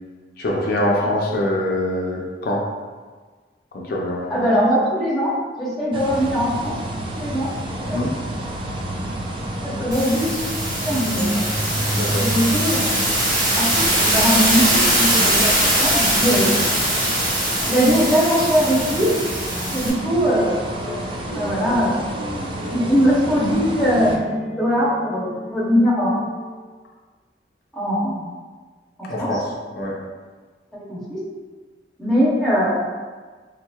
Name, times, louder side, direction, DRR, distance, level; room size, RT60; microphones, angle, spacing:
voice 1, 0.4-2.6 3.7-4.4 7.8-8.1 11.9-12.3 29.1-29.5 29.7-30.0, left 1 dB, 60° left, -2 dB, 0.5 m, -24 dB
voice 2, 4.3-6.7 7.1-8.0 9.6-10.4 10.8-11.5 12.2-12.9 13.5-15.5 15.8-16.6 17.6-19.1 19.7-20.6 21.3-22.0 22.7-24.3 24.6-26.2 27.7-28.2 29.0-29.4 30.7-31.2 32.0-32.8, equal, ahead, -7 dB, 0.7 m, -21 dB
sound 1, 5.9-24.2, right 1 dB, 30° right, 0.3 m, -30 dB
sound 2, 9.9-19.9, right 1 dB, 55° right, 1.1 m, -21 dB
sound 3, 20.3-26.8, equal, 70° right, 0.8 m, -35 dB
3.6 x 2.8 x 2.3 m, 1.4 s
head